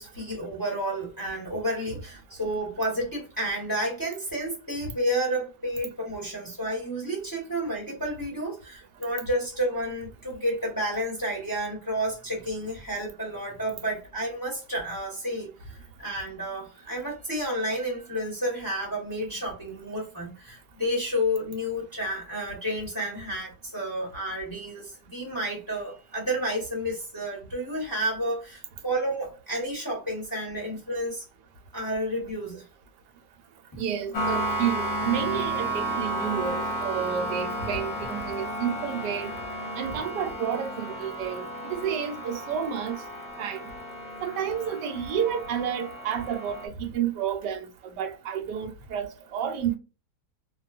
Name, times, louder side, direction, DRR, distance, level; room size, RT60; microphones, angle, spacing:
voice 1, 0.0-31.2 31.7-32.6, equal, 15° left, 0.8 m, -31 dB
voice 2, 33.8-39.3 39.8-43.0 43.4-43.7 44.2-49.8, right 8 dB, 80° right, 1.2 m, -30 dB
sound 1, 34.1-46.7, right 1 dB, 60° left, 1.0 m, -33 dB
2.7 x 2.3 x 2.3 m
omnidirectional pair, 1.8 m